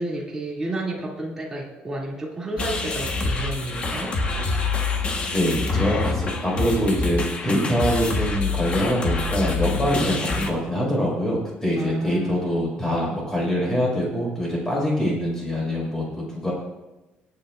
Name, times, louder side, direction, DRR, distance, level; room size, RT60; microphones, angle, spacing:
voice 1, 0.0-4.1 9.9-10.4 11.8-12.6, right 2 dB, 10° right, -5 dB, 2.6 m, -31 dB
sound 1, 2.6-10.5, left 3 dB, 30° left, 1.3 m, -26 dB
voice 2, 5.3-16.5, equal, 10° left, -4 dB, 5.0 m, -24 dB
25.5 x 9.1 x 2.5 m, 1.1 s
cardioid pair, 165°, 4 cm